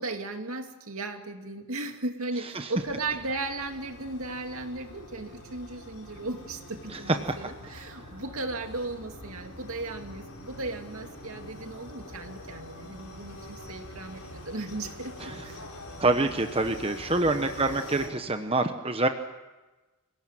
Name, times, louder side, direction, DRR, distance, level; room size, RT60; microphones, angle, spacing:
voice 1, 0.0-15.7 17.3-17.4, right 2 dB, 70° right, 5 dB, 2.5 m, -36 dB
sound 1, 2.7-18.1, left 1 dB, 80° left, 6.0 m, -44 dB
voice 2, 16.0-19.1, right 2 dB, 25° right, 7 dB, 1.0 m, -26 dB
26.5 x 17.5 x 9.0 m, 1.2 s
head